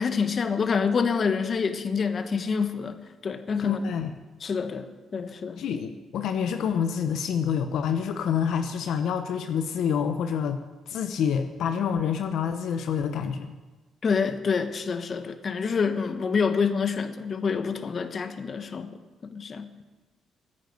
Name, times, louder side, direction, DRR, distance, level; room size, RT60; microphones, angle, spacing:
voice 1, 0.0-3.0 3.2-3.8 4.4-4.9 5.1-5.6 14.0-18.9 19.2-19.7, left 5 dB, 45° left, 9 dB, 1.2 m, -27 dB
voice 2, 3.6-4.1 5.6-13.5, left 7 dB, 75° left, 8 dB, 0.9 m, -27 dB
15.5 x 9.3 x 8.0 m, 1.2 s
cardioid pair, 90°, 0 cm